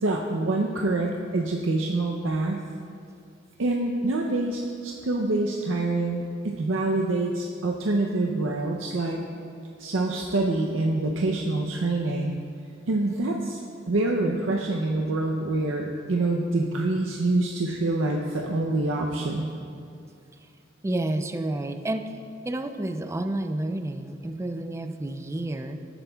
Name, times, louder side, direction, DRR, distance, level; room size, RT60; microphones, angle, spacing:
voice 1, 0.0-2.6 3.6-9.2 9.8-12.4 12.9-13.6 13.9-19.5, right 2 dB, 80° right, 0 dB, 0.6 m, -26 dB
voice 2, 20.8-22.2 22.4-25.8, right 1 dB, 15° right, 7 dB, 0.4 m, -30 dB
15.0 x 8.0 x 2.3 m, 2.4 s
head